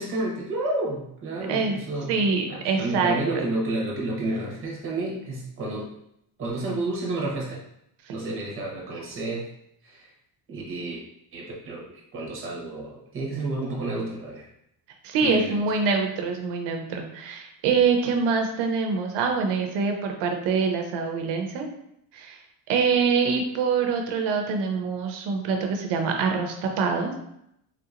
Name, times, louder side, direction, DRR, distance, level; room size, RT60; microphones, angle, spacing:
voice 1, 0.0-2.1 2.5-5.9 6.4-7.6 8.1-9.4 9.8-10.1 10.5-11.0 11.3-14.5 15.2-15.6, right 2 dB, 30° right, -3 dB, 1.0 m, -30 dB
voice 2, 2.1-3.4 15.0-21.7 22.1-22.4 22.7-27.1, right 5 dB, 65° right, 3 dB, 0.7 m, -25 dB
3.7 x 2.8 x 2.4 m, 0.77 s
cardioid pair, 165°, 46 cm